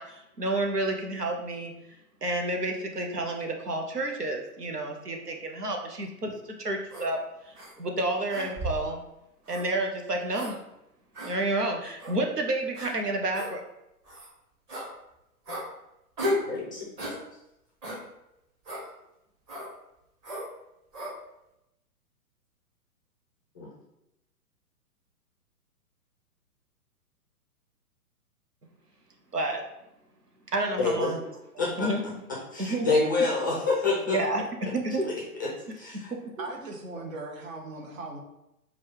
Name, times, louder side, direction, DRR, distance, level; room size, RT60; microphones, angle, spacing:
voice 1, 0.0-1.7 2.2-6.3 6.6-7.2 7.4-9.0 9.5-10.6 11.2-13.6 29.3-29.6 30.5-31.2 31.8-32.0 32.6-32.9 34.1-34.4 34.7-35.1 36.4-36.5, right 2 dB, 90° right, 3 dB, 0.8 m, -30 dB
sound 1, 6.9-7.1 7.5-7.7 8.3-8.9 9.5-9.6 10.3-10.5 11.1-11.3 12.0-12.1 12.7-12.9 13.3-13.5 14.0-14.3 14.7-14.9 15.5-15.6 16.2-16.5 17.0-17.2 17.8-18.0 18.6-18.8 19.5-19.7 20.2-20.5 20.9-21.1, left 1 dB, 20° right, 0.9 m, -33 dB
voice 2, 16.5-16.9 23.5-23.7 30.8-31.2 31.6-32.1 32.5-34.2 35.0-35.1 35.4-35.5 35.7-36.1, left 3 dB, 15° left, -5 dB, 0.4 m, -27 dB
voice 3, 36.4-38.2, right 3 dB, 55° right, 2 dB, 1.0 m, -38 dB
4.9 x 2.3 x 3.6 m, 0.86 s
figure-of-eight pair, 120°, 46 cm